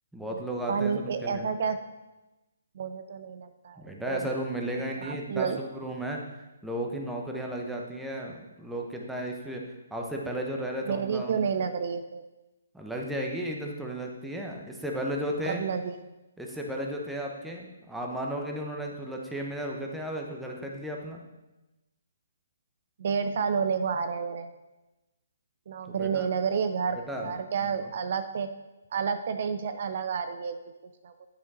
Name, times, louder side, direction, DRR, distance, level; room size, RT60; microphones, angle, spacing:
voice 1, 0.1-1.5 3.8-6.2 6.6-9.6 9.9-11.4 12.7-15.6 16.4-21.2 25.9-26.3 27.1-27.3, right 1 dB, 5° right, -1 dB, 0.9 m, -34 dB
voice 2, 0.7-1.8 2.8-4.3 5.0-5.6 10.8-12.2 15.4-16.0 23.0-24.5 25.7-28.5 28.9-30.6 31.0-31.1, right 6 dB, 55° right, 10 dB, 0.4 m, -30 dB
9.1 x 5.1 x 4.2 m, 1.0 s
hypercardioid pair, 145°, 0 cm